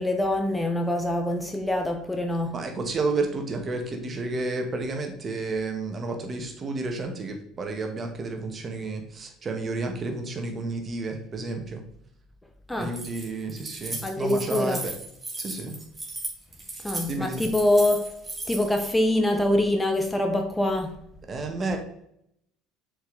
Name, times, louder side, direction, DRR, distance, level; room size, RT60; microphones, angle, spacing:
voice 1, 0.0-2.6 12.7-13.0 14.0-14.9 16.8-18.1 18.4-21.0, left 1 dB, 10° left, 4 dB, 1.1 m, -24 dB
voice 2, 2.5-11.8 12.8-14.9 15.4-15.7 17.1-17.5 21.3-21.8, right 3 dB, 35° right, 4 dB, 1.6 m, -31 dB
Keys jangling, 12.8-18.9, right 2 dB, 15° right, 2.7 m, -36 dB
6.2 x 5.2 x 4.0 m, 0.72 s
hypercardioid pair, 70°, 0 cm